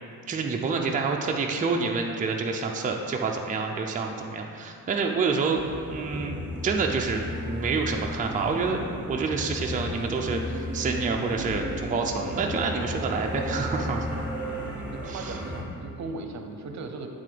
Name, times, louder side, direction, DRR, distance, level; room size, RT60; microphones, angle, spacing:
voice 1, 0.3-5.6 5.9-6.4 6.6-14.2 15.1-15.4, right 4 dB, 25° right, 1 dB, 0.5 m, -28 dB
sound 1, 5.6-15.6, equal, 5° right, 1.2 m, -34 dB
voice 2, 14.9-17.1, right 3 dB, 55° right, 5 dB, 0.7 m, -38 dB
9.5 x 3.7 x 5.1 m, 2.6 s
cardioid pair, 115°, 32 cm